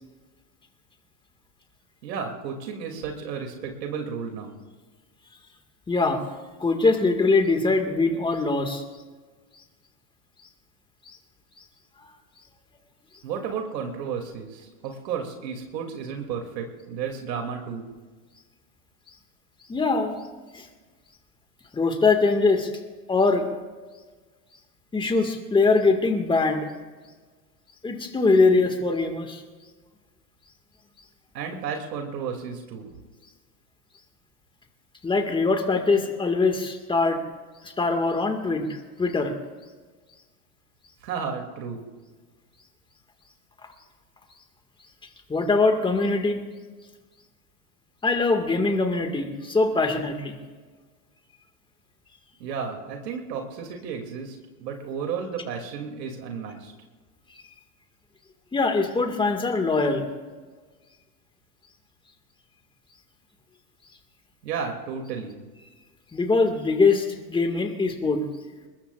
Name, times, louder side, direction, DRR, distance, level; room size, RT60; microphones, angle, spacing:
voice 1, 2.0-4.6 13.2-17.9 31.3-32.9 41.0-41.8 52.4-56.7 64.4-65.4, right 6 dB, 85° right, 3 dB, 2.8 m, -33 dB
voice 2, 5.9-6.2 6.6-8.8 19.7-20.2 20.5-20.7 21.7-22.7 23.1-23.5 24.9-26.7 27.8-29.4 35.0-37.2 37.6-39.3 45.3-46.4 48.0-50.4 58.5-60.1 66.1-68.2, left 3 dB, 10° left, 5 dB, 1.8 m, -22 dB
22.0 x 21.0 x 2.5 m, 1.4 s
hypercardioid pair, 120°, 49 cm